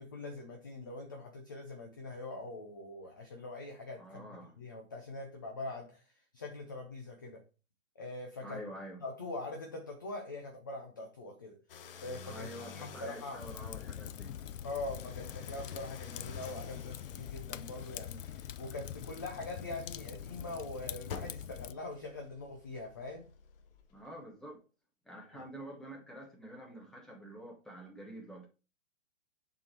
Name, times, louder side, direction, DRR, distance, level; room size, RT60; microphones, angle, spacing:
voice 1, 0.0-7.4 8.0-8.6 9.0-11.6 12.0-13.4 14.6-23.3 25.3-25.4, left 2 dB, 15° left, 0.4 m, -43 dB
voice 2, 4.0-4.5 8.4-9.0 12.2-14.3 23.9-24.6 25.1-28.5, equal, ahead, 1.0 m, -47 dB
sound 1, 11.7-24.1, left 6 dB, 45° left, 0.9 m, -51 dB
Fire, 13.4-21.7, left 10 dB, 70° left, 0.5 m, -44 dB
7.3 x 4.4 x 4.4 m
hypercardioid pair, 150°, 39 cm